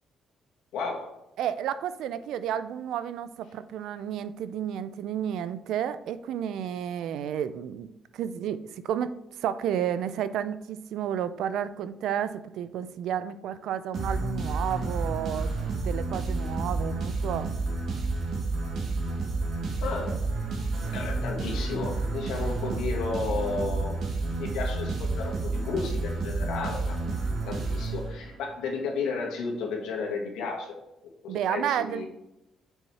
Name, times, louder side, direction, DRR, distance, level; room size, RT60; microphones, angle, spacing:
voice 1, 0.7-1.1 19.8-20.2 20.9-24.0 24.4-27.0 27.4-30.8 31.2-32.1, left 4 dB, 85° left, 0 dB, 1.5 m, -33 dB
voice 2, 1.4-17.5 31.3-32.1, right 9 dB, 85° right, 14 dB, 0.4 m, -31 dB
sound 1, 13.9-28.5, right 3 dB, 65° right, 1.6 m, -30 dB
6.6 x 4.6 x 4.2 m, 0.90 s
cardioid pair, 90°, 0 cm